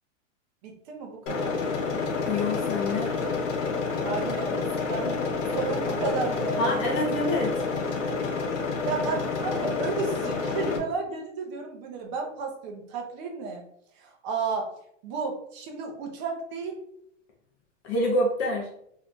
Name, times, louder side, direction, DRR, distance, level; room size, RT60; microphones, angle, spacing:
voice 1, 0.6-1.7 4.0-7.2 8.8-13.6 14.0-14.7 15.0-16.8, right 4 dB, 35° right, 2 dB, 0.6 m, -33 dB
sound 1, 1.3-10.8, left 4 dB, 70° left, 1.0 m, -29 dB
voice 2, 2.3-3.1 6.6-7.5 17.8-18.7, left 1 dB, 30° left, 0 dB, 0.5 m, -26 dB
2.7 x 2.3 x 3.6 m, 0.73 s
hypercardioid pair, 140°, 38 cm